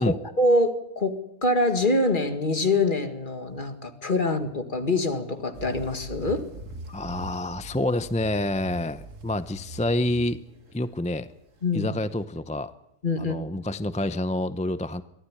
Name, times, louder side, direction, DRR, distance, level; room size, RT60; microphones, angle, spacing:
voice 1, 0.0-6.5 11.6-11.9 13.0-13.4, left 2 dB, 40° left, 7 dB, 2.1 m, -25 dB
Singing sand dune, 5.5-12.2, right 1 dB, 75° right, 2.5 m, -42 dB
voice 2, 6.9-10.4 10.7-11.3 11.7-12.7 13.2-15.0, left 1 dB, 10° left, 13 dB, 0.4 m, -28 dB
23.0 x 15.0 x 9.8 m, 0.82 s
omnidirectional pair, 1.3 m